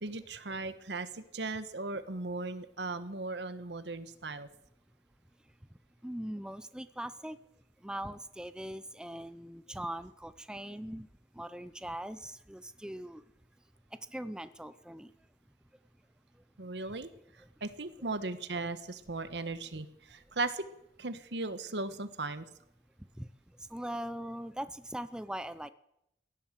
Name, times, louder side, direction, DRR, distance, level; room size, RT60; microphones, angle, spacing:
voice 1, 0.0-4.5 16.6-17.1 17.6-20.6 21.0-22.5, right 3 dB, 80° right, 12 dB, 1.3 m, -37 dB
voice 2, 6.0-7.4 7.8-11.1 11.4-13.2 14.1-15.1 23.2-23.3 23.7-25.7, right 1 dB, 5° right, 13 dB, 0.5 m, -41 dB
16.5 x 11.5 x 7.5 m, 0.81 s
head